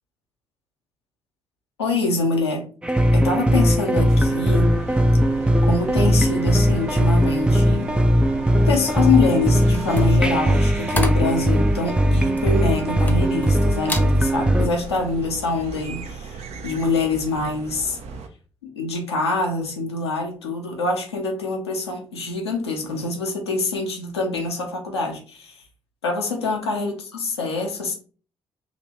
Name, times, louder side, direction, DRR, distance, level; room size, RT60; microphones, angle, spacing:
voice 1, 1.8-2.7 3.1-4.7 5.7-7.9 8.5-18.0 18.6-25.6 26.0-27.9, left 3 dB, 85° left, 0.7 m, -25 dB
sound 1, 2.8-14.7, equal, 5° right, 0.4 m, -19 dB
sound 2, 4.1-18.3, right 5 dB, 55° right, 0.6 m, -36 dB
sound 3, 9.7-13.5 13.8-14.1 14.6-14.9, left 1 dB, 10° left, 0.8 m, -32 dB
5.1 x 2.9 x 3.0 m
figure-of-eight pair, 40°, 13 cm